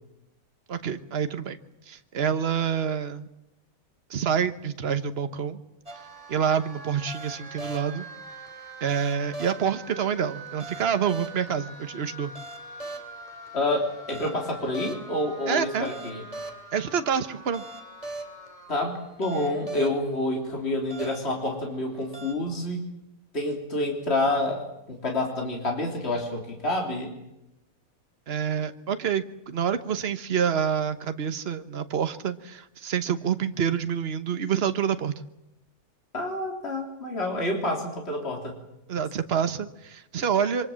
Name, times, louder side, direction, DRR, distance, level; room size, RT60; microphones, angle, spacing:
voice 1, 0.7-1.6 1.9-3.3 4.1-5.6 6.3-8.1 8.8-12.3 15.5-15.9 16.7-17.6 28.3-35.1 38.9-40.7, right 7 dB, 45° right, 10 dB, 1.3 m, -27 dB
sound 1, 5.9-22.3, right 2 dB, 25° right, 2.9 m, -41 dB
voice 2, 13.5-16.2 18.7-22.8 23.3-27.1 36.1-38.5, left 1 dB, 45° left, 0 dB, 3.8 m, -28 dB
27.0 x 24.0 x 7.5 m, 0.90 s
omnidirectional pair, 1.5 m